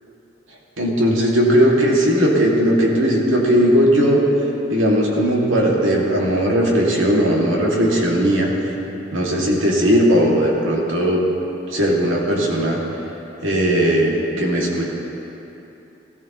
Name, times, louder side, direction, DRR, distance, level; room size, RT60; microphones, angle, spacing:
voice 1, 0.8-4.2 4.7-8.5 9.1-11.2 11.7-12.8 13.4-14.8, equal, 85° right, -3 dB, 2.2 m, -17 dB
17.0 x 14.5 x 3.0 m, 3.0 s
head